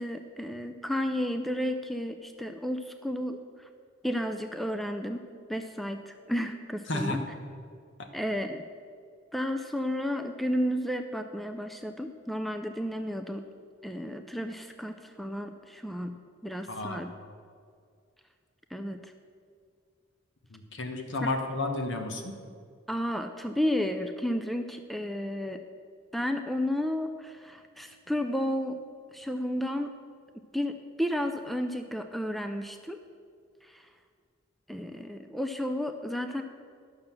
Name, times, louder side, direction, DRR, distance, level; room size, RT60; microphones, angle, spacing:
voice 1, 0.0-3.4 4.0-5.2 5.5-7.2 8.1-8.6 9.3-13.4 13.8-16.1 16.4-17.1 18.7-19.0 21.2-21.3 22.9-25.6 26.1-28.8 29.1-29.9 30.5-33.0 33.7-33.8 34.7-36.4, equal, ahead, 6 dB, 0.4 m, -32 dB
voice 2, 6.9-7.2 16.7-17.0 20.5-22.3, left 2 dB, 65° left, 5 dB, 1.3 m, -32 dB
11.5 x 6.4 x 7.4 m, 2.1 s
head